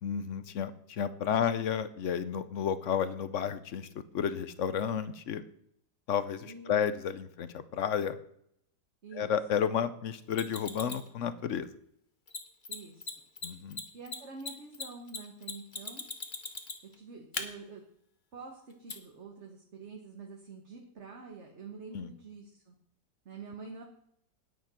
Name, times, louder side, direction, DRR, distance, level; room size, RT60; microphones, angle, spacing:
voice 1, 0.0-5.4 6.1-8.2 9.1-11.7 13.4-13.8 21.9-22.1, left 8 dB, 55° left, 13 dB, 1.0 m, -32 dB
voice 2, 6.4-6.8 9.0-9.3 12.7-13.1 13.9-16.0 16.9-17.8 18.3-22.7 23.2-23.8, right 4 dB, 45° right, 1 dB, 1.7 m, -47 dB
Mechanisms, 10.3-11.1 12.3-12.4 12.6-12.7 13.0-13.1 13.4-16.9 17.3-17.4 18.9-19.0, left 4 dB, 30° left, 1.3 m, -38 dB
9.5 x 9.3 x 6.3 m, 0.71 s
omnidirectional pair, 1.8 m